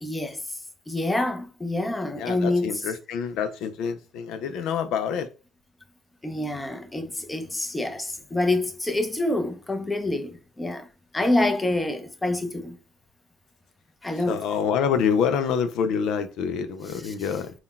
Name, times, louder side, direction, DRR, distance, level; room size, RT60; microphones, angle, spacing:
voice 1, 0.0-0.4 0.9-2.7 6.2-10.9 11.1-12.8 14.0-14.4 16.9-17.1, left 2 dB, 15° left, 0.6 m, -27 dB
voice 2, 2.2-5.3 14.3-17.5, left 7 dB, 75° left, 0.3 m, -26 dB
3.6 x 2.1 x 2.3 m
supercardioid pair, 80°, 0 cm